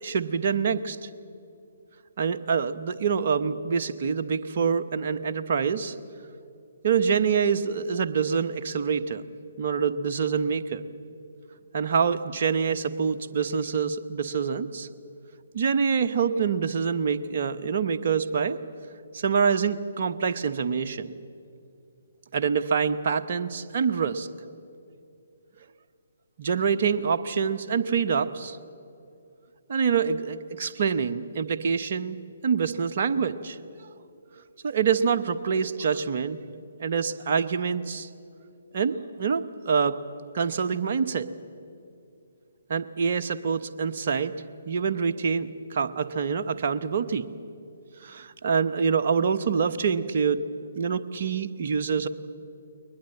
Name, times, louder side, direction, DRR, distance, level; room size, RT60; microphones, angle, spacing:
voice 1, 0.0-1.1 2.2-6.0 6.2-6.3 6.8-9.2 9.6-10.8 11.7-14.9 15.5-18.6 19.1-21.1 22.3-24.3 26.4-28.6 29.7-32.2 32.4-33.6 34.6-38.1 38.7-40.0 40.3-41.3 42.7-44.3 44.7-47.3 48.0-50.5 50.7-52.1, right 6 dB, 50° right, 8 dB, 1.0 m, -26 dB
22.0 x 20.5 x 7.7 m, 2.6 s
figure-of-eight pair, 135°, 0 cm